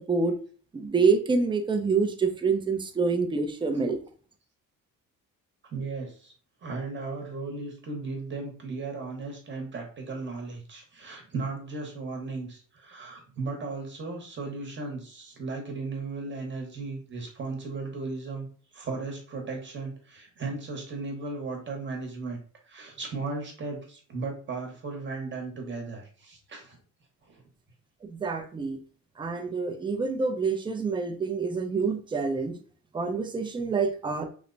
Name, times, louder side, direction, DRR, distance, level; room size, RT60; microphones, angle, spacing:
voice 1, 0.7-4.0 28.1-28.8 29.2-32.6 32.9-34.2, right 4 dB, 15° right, 5 dB, 0.4 m, -27 dB
voice 2, 5.7-6.3 6.6-18.5 18.7-22.4 22.7-26.8 27.2-27.4, right 3 dB, 35° right, 2 dB, 1.0 m, -36 dB
3.1 x 2.1 x 3.8 m, 0.42 s
cardioid pair, 125°, 33 cm